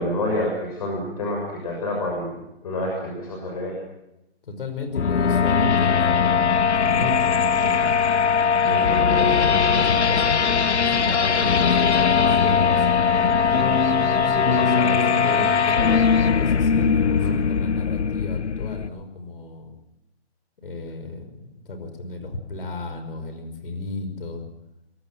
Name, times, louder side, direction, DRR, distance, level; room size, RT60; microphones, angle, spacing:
voice 1, 0.0-2.3 2.6-3.8 5.3-5.4 17.2-17.4, left 1 dB, 35° left, -1 dB, 6.4 m, -28 dB
voice 2, 4.5-8.0 8.6-13.4 14.1-15.8 16.3-19.8 20.6-24.4, left 2 dB, 55° left, 7 dB, 5.5 m, -33 dB
sound 1, 4.9-18.9, left 6 dB, 80° left, 1.2 m, -20 dB
sound 2, 8.7-16.3, right 5 dB, 75° right, 2.8 m, -37 dB
24.5 x 22.5 x 6.2 m, 0.89 s
hypercardioid pair, 170°, 33 cm